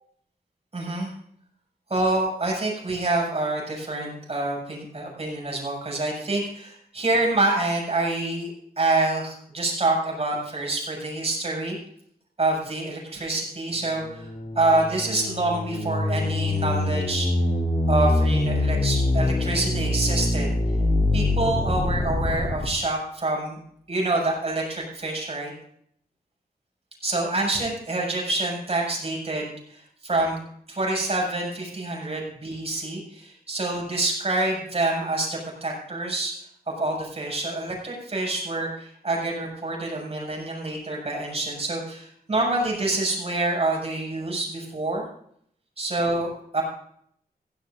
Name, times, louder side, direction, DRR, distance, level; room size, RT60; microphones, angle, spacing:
voice 1, 0.7-1.1 1.9-11.8 12.4-14.3 14.5-17.3 17.9-20.5 21.1-23.6 23.9-25.5 27.0-30.4 30.7-36.3 36.7-45.0 45.8-46.6, right 2 dB, 40° right, -1 dB, 6.7 m, -27 dB
sound 1, 13.9-22.7, left 2 dB, 50° left, 3.3 m, -24 dB
16.5 x 16.0 x 2.6 m, 0.67 s
wide cardioid pair, 120°, 16 cm